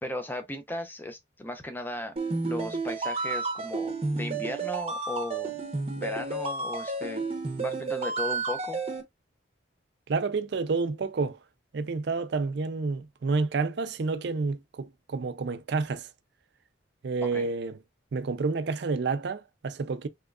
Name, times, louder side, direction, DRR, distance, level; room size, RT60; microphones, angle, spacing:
voice 1, 0.0-2.1 2.4-5.6 6.0-7.2 7.6-8.8 17.2-17.5, left 1 dB, 10° left, 0.6 m, -36 dB
sound 1, 2.2-9.0, right 3 dB, 30° right, 0.7 m, -31 dB
voice 2, 10.1-11.4 11.7-16.1 17.0-17.8 18.1-20.1, right 4 dB, 55° right, 0.4 m, -29 dB
3.6 x 3.1 x 2.3 m
head